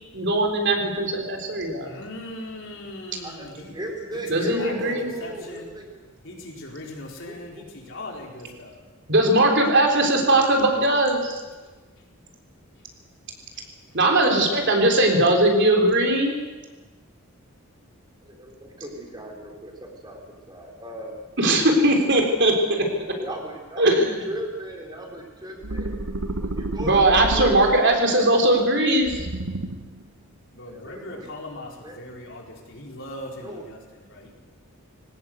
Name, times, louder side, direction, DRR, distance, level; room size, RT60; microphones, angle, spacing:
voice 1, 0.1-2.0 4.3-5.1 9.1-11.4 13.9-16.4 21.4-22.9 23.8-24.2 26.8-29.3, right 1 dB, 55° right, 2 dB, 3.7 m, -20 dB
voice 2, 1.8-3.8 4.1-5.7 6.2-8.8 13.5-13.6 30.5-34.3, left 1 dB, 60° left, -1 dB, 4.7 m, -39 dB
voice 3, 3.2-6.1 7.2-7.6 18.2-20.2 20.5-21.1 23.1-26.0 26.4-27.8 30.7-31.3 31.8-31.9 33.4-33.6 34.2-34.3, right 1 dB, 20° right, 1 dB, 4.0 m, -37 dB
sound 1, 25.6-28.1 29.0-30.0, right 1 dB, 85° right, 1.3 m, -30 dB
21.0 x 18.0 x 8.1 m, 1.2 s
head